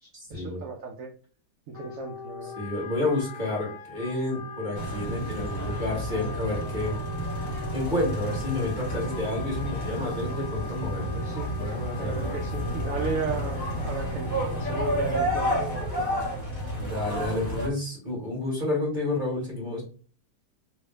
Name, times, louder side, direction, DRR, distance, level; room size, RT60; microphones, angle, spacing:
voice 1, 0.0-1.1 1.7-2.6 11.1-11.5 12.0-16.2, right 4 dB, 75° right, 1 dB, 0.7 m, -35 dB
Wind instrument woodwind instrument, 1.7-15.8, left 5 dB, 80° left, 1.3 m, -41 dB
voice 2, 2.4-6.9 7.4-11.2 11.5-12.4 16.8-19.8, left 2 dB, 25° right, -5 dB, 1.2 m, -30 dB
sound 1, 4.7-17.7, equal, 25° left, 1.1 m, -31 dB
3.1 x 2.7 x 3.2 m, 0.41 s
omnidirectional pair, 2.2 m